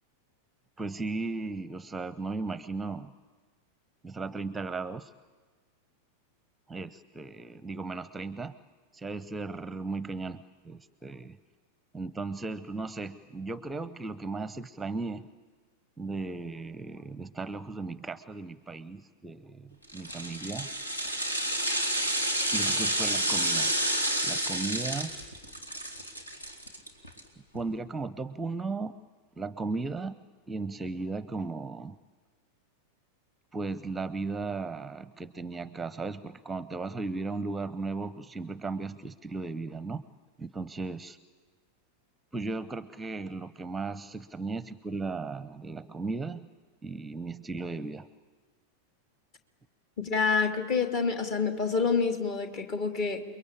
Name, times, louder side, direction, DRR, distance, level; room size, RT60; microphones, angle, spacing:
voice 1, 0.8-3.1 4.0-5.1 6.7-8.5 8.9-10.4 10.6-11.4 11.9-15.3 16.0-20.7 22.5-23.7 24.2-25.1 27.5-28.9 29.4-30.2 30.5-31.9 33.5-40.0 40.4-41.2 42.3-46.5 46.8-48.1, right 3 dB, 10° right, 17 dB, 0.7 m, -36 dB
sound 1, 19.9-27.2 27.5-27.6, right 1 dB, 80° left, 3.1 m, -30 dB
voice 2, 50.0-53.2, left 5 dB, 45° left, 6 dB, 2.8 m, -27 dB
29.5 x 22.5 x 8.7 m, 1.4 s
figure-of-eight pair, 90°, 0 cm